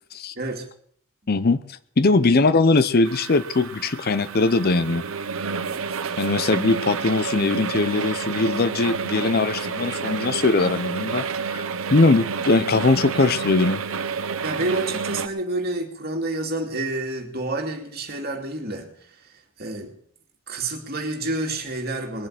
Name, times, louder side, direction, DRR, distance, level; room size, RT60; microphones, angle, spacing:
voice 1, 0.4-0.7 14.4-18.9 19.6-19.9 20.5-22.3, right 2 dB, 50° right, 3 dB, 2.5 m, -28 dB
voice 2, 1.3-1.6 2.0-5.0 6.2-11.6 11.9-13.8, left 3 dB, 50° left, 14 dB, 0.7 m, -20 dB
sound 1, 3.0-15.3, right 5 dB, 75° right, 0.9 m, -29 dB
20.5 x 7.7 x 7.5 m, 0.63 s
head